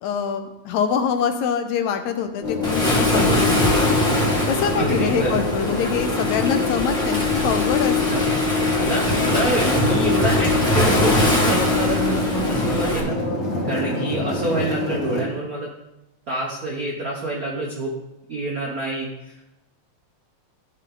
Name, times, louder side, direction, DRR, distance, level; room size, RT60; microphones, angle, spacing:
voice 1, 0.0-3.9 4.5-8.3, left 7 dB, 75° left, 6 dB, 2.1 m, -25 dB
sound 1, 2.4-15.2, left 4 dB, 35° left, 1.5 m, -25 dB
Waves surf, 2.6-13.0, equal, ahead, 1.1 m, -23 dB
voice 2, 4.8-5.3 8.1-8.2 8.7-13.2 13.6-15.7 16.3-17.9 18.3-19.4, right 2 dB, 85° right, -2 dB, 0.7 m, -26 dB
13.0 x 5.5 x 3.9 m, 0.93 s
omnidirectional pair, 3.4 m